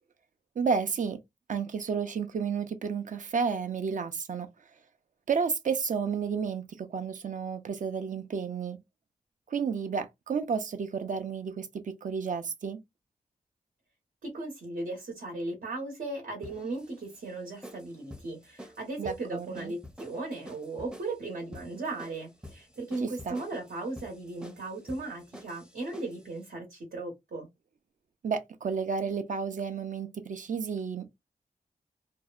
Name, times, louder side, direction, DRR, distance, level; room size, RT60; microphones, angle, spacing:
voice 1, 0.6-1.2 1.5-4.5 5.3-8.8 9.5-12.8 19.0-19.7 23.0-23.4 28.2-31.2, right 6 dB, 60° right, 0.5 m, -31 dB
voice 2, 14.2-27.5, right 2 dB, 85° right, 1.0 m, -37 dB
sound 1, 16.4-26.3, equal, 5° right, 0.5 m, -49 dB
2.6 x 2.1 x 2.3 m
wide cardioid pair, 80°, 15 cm